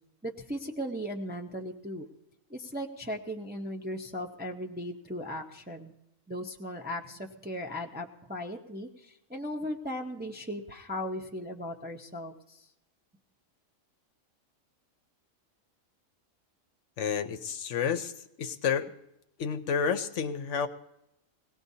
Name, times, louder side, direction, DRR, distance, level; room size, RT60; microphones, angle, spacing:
voice 1, 0.2-2.1 2.5-5.9 6.3-12.7, equal, 10° right, 1 dB, 0.5 m, -37 dB
voice 2, 17.0-18.1 18.4-18.9 19.4-20.7, left 7 dB, 65° left, 9 dB, 0.9 m, -30 dB
22.0 x 17.5 x 2.7 m, 0.84 s
omnidirectional pair, 1.4 m